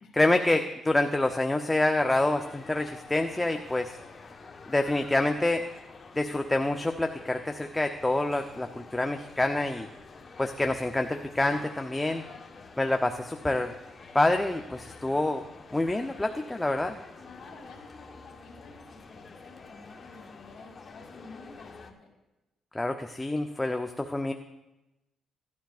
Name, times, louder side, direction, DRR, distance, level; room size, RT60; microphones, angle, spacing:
voice 1, 0.1-4.0 4.7-5.6 6.2-9.9 10.4-12.2 12.8-13.7 14.1-15.4 15.7-17.0 22.7-24.3, left 2 dB, 15° left, 5 dB, 0.5 m, -27 dB
sound 1, 2.0-21.9, left 4 dB, 35° left, 1.1 m, -49 dB
voice 2, 17.2-22.1, left 3 dB, 60° left, -3 dB, 1.9 m, -50 dB
17.0 x 11.5 x 2.4 m, 0.99 s
cardioid pair, 90°, 0 cm